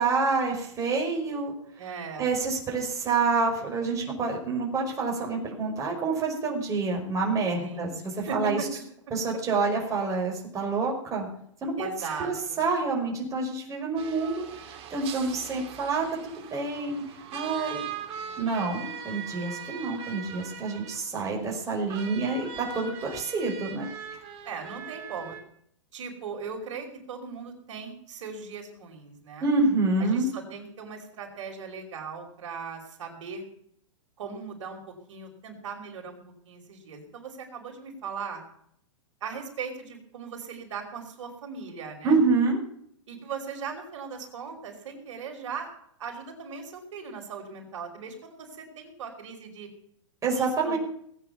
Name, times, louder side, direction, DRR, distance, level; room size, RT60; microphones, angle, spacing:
voice 1, 0.0-1.5 2.2-8.7 9.1-11.3 11.6-11.9 12.2-16.1 16.5-17.0 17.3-17.8 18.4-24.2 29.4-30.3 42.0-42.6 50.2-50.8, right 3 dB, 20° right, -1 dB, 5.1 m, -27 dB
voice 2, 1.8-2.3 7.6-8.7 11.8-12.7 24.4-25.4 25.9-29.5 30.0-33.5 34.2-34.8 35.1-36.2 36.4-38.4 39.2-42.2 43.1-45.7 46.0-49.7 50.4-50.8, right 5 dB, 65° right, 2 dB, 5.3 m, -38 dB
sound 1, 14.0-25.4, right 7 dB, 35° right, 3.3 m, -41 dB
19.5 x 9.5 x 7.0 m, 0.68 s
hypercardioid pair, 135°, 17 cm